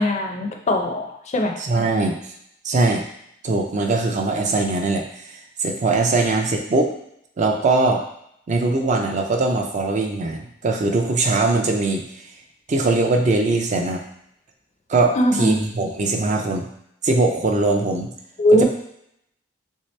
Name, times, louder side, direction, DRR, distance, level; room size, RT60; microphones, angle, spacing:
voice 1, 0.0-1.6 15.1-15.6 18.4-18.6, equal, 35° left, 3 dB, 0.4 m, -20 dB
voice 2, 1.6-2.2 2.6-3.0 3.4-5.1 5.6-6.9 7.4-8.0 8.5-12.0 12.7-14.0 14.9-16.7 17.0-18.1, right 3 dB, 40° right, 3 dB, 0.4 m, -21 dB
3.2 x 2.8 x 3.2 m, 0.74 s
head